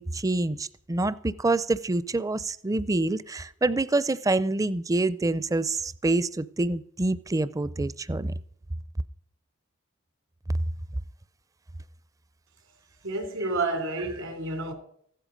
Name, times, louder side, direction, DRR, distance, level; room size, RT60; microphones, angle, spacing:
voice 1, 0.0-8.3 13.4-13.5, right 2 dB, 15° right, 0.4 m, -26 dB
voice 2, 13.0-14.7, right 2 dB, 80° right, 3.4 m, -30 dB
15.0 x 12.0 x 5.2 m
head